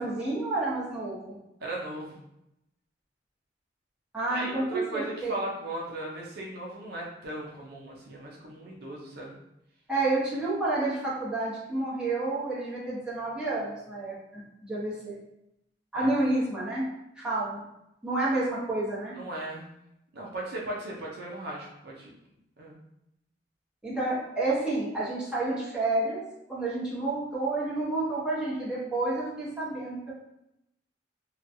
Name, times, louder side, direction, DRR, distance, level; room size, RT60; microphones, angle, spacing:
voice 1, 0.0-1.4 4.1-5.3 9.9-15.2 15.9-16.9 17.2-17.6 18.0-19.2 23.8-26.2 26.5-30.1, right 2 dB, 5° right, -9 dB, 1.0 m, -29 dB
voice 2, 1.6-2.2 4.3-9.4 15.9-16.2 19.1-19.7 20.1-22.1 22.6-22.8, right 1 dB, 60° right, -3 dB, 0.5 m, -37 dB
2.9 x 2.3 x 2.6 m, 0.83 s
head